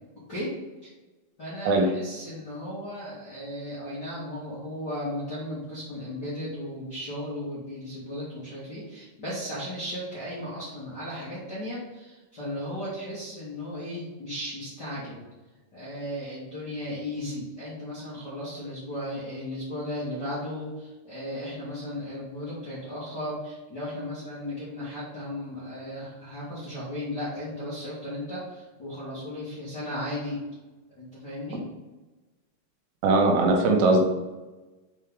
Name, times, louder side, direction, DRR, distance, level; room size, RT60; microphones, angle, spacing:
voice 1, 1.4-15.2 15.7-30.4 30.9-31.6, left 1 dB, 40° left, -10 dB, 1.4 m, -35 dB
voice 2, 33.0-34.0, right 2 dB, 80° right, 1 dB, 3.6 m, -20 dB
8.2 x 4.5 x 3.7 m, 1.1 s
omnidirectional pair, 5.7 m